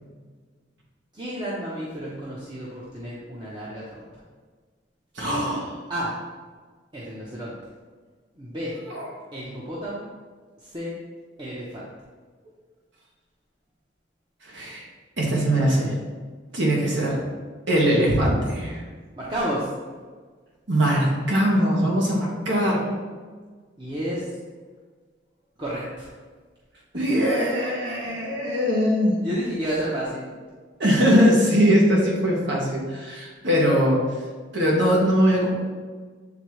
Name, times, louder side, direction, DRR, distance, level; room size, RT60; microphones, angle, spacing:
voice 1, 1.1-4.2 5.9-6.2 6.9-7.5 8.4-8.7 9.3-10.1 10.6-10.9 11.4-11.9 19.2-19.7 23.8-24.4 25.6-26.1 26.9-27.4 28.0-28.4 29.2-30.4, right 1 dB, 25° right, -7 dB, 0.8 m, -31 dB
voice 2, 5.1-5.8 8.9-9.1 14.5-14.8 15.2-15.9 16.5-17.2 17.7-18.8 20.7-22.8 26.9-29.2 30.8-34.0 34.5-35.5, equal, 70° right, -3 dB, 1.4 m, -21 dB
8.3 x 3.6 x 3.1 m, 1.5 s
head